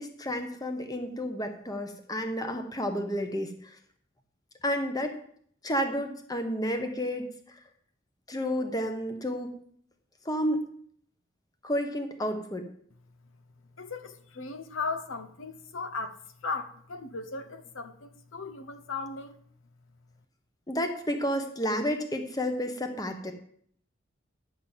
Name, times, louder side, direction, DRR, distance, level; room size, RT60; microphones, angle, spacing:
voice 1, 0.0-3.7 4.6-5.2 5.6-7.3 8.3-9.5 10.2-10.6 11.6-12.7 20.7-23.3, equal, 20° left, 1.1 m, -31 dB
voice 2, 13.8-19.4, left 4 dB, 80° left, 1.0 m, -37 dB
10.0 x 6.1 x 7.4 m
head